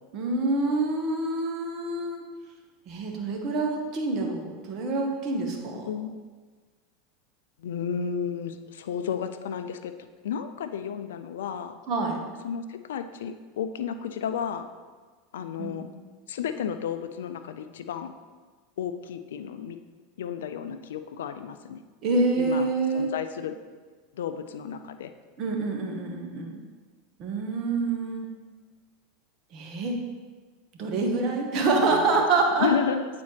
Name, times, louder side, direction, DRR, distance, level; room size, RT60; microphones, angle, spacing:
voice 1, 0.1-2.2 2.9-5.9 11.9-12.2 15.6-15.8 22.0-23.1 25.4-26.6 27.2-28.3 29.5-30.0 30.8-32.7, right 3 dB, 45° right, 1 dB, 1.2 m, -26 dB
voice 2, 7.6-9.9 10.2-11.7 12.4-14.7 15.3-15.9 16.3-18.1 18.8-19.8 20.2-21.8 22.4-23.5 24.1-25.1 31.8-32.2 32.6-33.2, left 7 dB, 80° left, 9 dB, 0.3 m, -32 dB
8.4 x 4.2 x 3.2 m, 1.4 s
hypercardioid pair, 100°, 0 cm